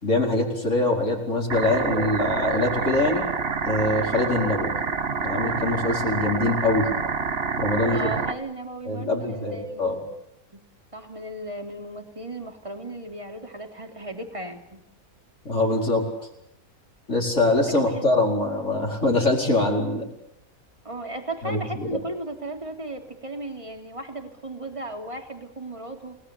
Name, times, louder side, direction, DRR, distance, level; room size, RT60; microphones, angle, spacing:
voice 1, 0.0-3.2 3.6-4.7 5.2-6.9 7.6-8.1 8.9-10.0 15.5-16.0 17.1-20.0 21.4-22.0, left 2 dB, 55° left, -2 dB, 5.2 m, -23 dB
sound 1, 1.5-8.3, right 5 dB, 45° right, 1.4 m, -27 dB
voice 2, 7.9-10.1 10.5-10.6 10.9-14.8 17.6-18.1 20.8-26.2, right 2 dB, 20° right, 4 dB, 3.2 m, -36 dB
29.5 x 18.5 x 8.5 m, 0.83 s
omnidirectional pair, 1.5 m